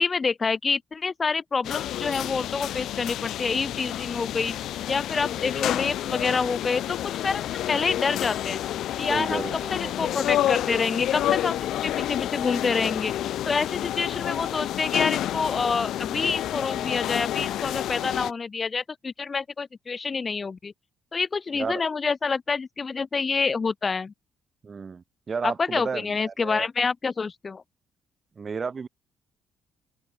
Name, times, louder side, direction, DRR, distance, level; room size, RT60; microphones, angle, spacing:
voice 1, 0.0-4.6 4.9-8.6 9.0-13.1 13.5-20.7 21.1-24.1 25.4-27.6, left 4 dB, 35° left, 3.6 m, -27 dB
sound 1, 1.6-18.3, left 12 dB, 80° left, 3.8 m, -29 dB
voice 2, 9.1-9.9 21.5-21.8 24.6-26.7 28.4-28.9, right 5 dB, 40° right, 6.1 m, -32 dB
cardioid pair, 90°, 0 cm